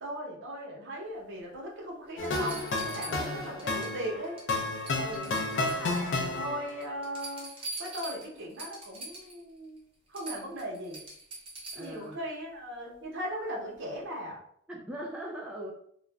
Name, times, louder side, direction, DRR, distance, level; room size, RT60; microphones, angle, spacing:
voice 1, 0.0-4.4 4.9-7.5 7.8-9.8 10.1-11.0 11.7-14.4, equal, 60° right, -2 dB, 0.8 m, -38 dB
sound 1, 1.5-1.6 2.2-3.9 4.2-4.6 4.9-6.3 6.7-9.4 9.8-9.9 10.1-12.0 13.7-13.8, right 2 dB, 25° right, 0.7 m, -43 dB
sound 2, 2.2-6.9, left 2 dB, 65° left, 0.4 m, -32 dB
voice 2, 3.1-3.4 5.0-5.6 11.7-12.2 14.7-15.7, right 1 dB, 5° right, -3 dB, 0.3 m, -41 dB
2.4 x 2.0 x 3.3 m, 0.66 s
head